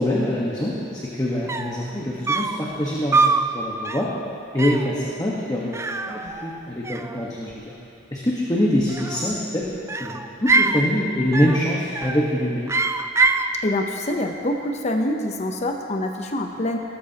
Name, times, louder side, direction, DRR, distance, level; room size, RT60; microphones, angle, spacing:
voice 1, 0.0-4.1 4.5-5.8 6.1-7.7 8.1-9.7 10.0-12.7, left 1 dB, 20° left, -5 dB, 1.2 m, -24 dB
sound 1, 1.2-1.3 1.5-1.8 2.3-2.6 3.1-3.5 3.8-4.1 4.6-4.9 5.7-6.6 6.8-7.6 8.8-9.4 9.9-10.8 11.3-11.6 11.9-12.3 12.7-13.5, right 3 dB, 15° right, 0.4 m, -23 dB
voice 2, 13.6-16.8, left 1 dB, 40° left, 3 dB, 0.7 m, -25 dB
17.5 x 13.0 x 2.9 m, 2.5 s
head